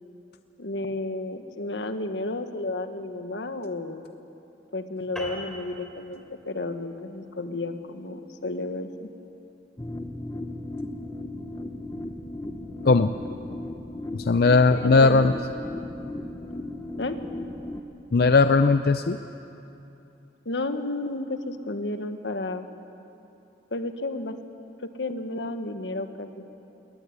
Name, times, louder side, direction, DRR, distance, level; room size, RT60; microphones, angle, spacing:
voice 1, 0.6-4.0 4.7-9.1 14.7-15.2 17.0-17.2 20.4-22.7 23.7-24.4 24.8-26.3, left 2 dB, 85° left, 8 dB, 1.4 m, -32 dB
sound 1, 5.2-9.9, equal, 5° left, 3.3 m, -43 dB
sound 2, 9.8-17.8, left 1 dB, 20° left, 0.9 m, -36 dB
voice 2, 14.2-15.3 18.1-19.2, left 3 dB, 60° left, 10 dB, 0.5 m, -18 dB
20.0 x 19.5 x 9.7 m, 2.9 s
head